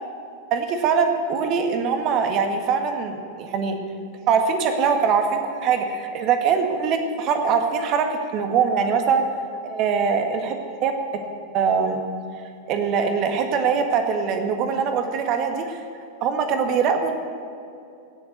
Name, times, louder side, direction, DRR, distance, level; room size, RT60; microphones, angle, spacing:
voice 1, 0.5-3.8 4.3-8.1 8.3-9.2 9.6-10.6 10.8-10.9 11.5-12.0 12.7-15.8 16.2-17.1, right 6 dB, 40° right, 5 dB, 1.7 m, -22 dB
17.0 x 7.3 x 8.3 m, 2.5 s
figure-of-eight pair, 90°, 0 cm